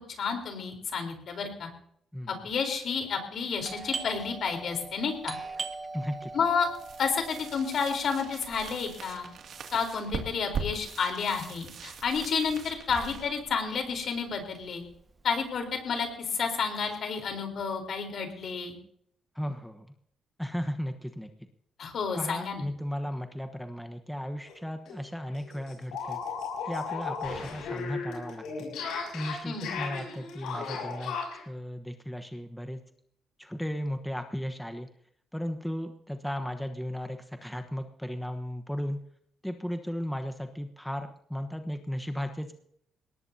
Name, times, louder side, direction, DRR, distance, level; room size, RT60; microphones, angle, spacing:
voice 1, 0.2-1.7 2.3-5.4 6.3-6.7 7.0-9.3 9.7-14.8 15.2-18.7 21.8-22.6 29.4-29.7, left 5 dB, 60° left, 4 dB, 4.0 m, -30 dB
voice 2, 2.1-2.5 5.9-6.3 19.3-19.9 20.4-21.3 22.1-26.2 26.7-28.7 29.1-31.2 31.5-32.8 33.4-34.9 35.3-39.0 39.4-42.5, equal, 5° left, 6 dB, 1.1 m, -35 dB
Doorbell, 3.6-13.0 13.2-13.3 14.0-14.3 14.6-16.0, right 3 dB, 30° right, 1.4 m, -42 dB
sound 1, 6.7-14.4, right 5 dB, 65° right, 2.4 m, -41 dB
sound 2, 24.4-24.6 24.9-25.0 25.3-31.4, left 5 dB, 90° left, 6.8 m, -36 dB
21.5 x 18.5 x 2.8 m, 0.69 s
cardioid pair, 90°, 0 cm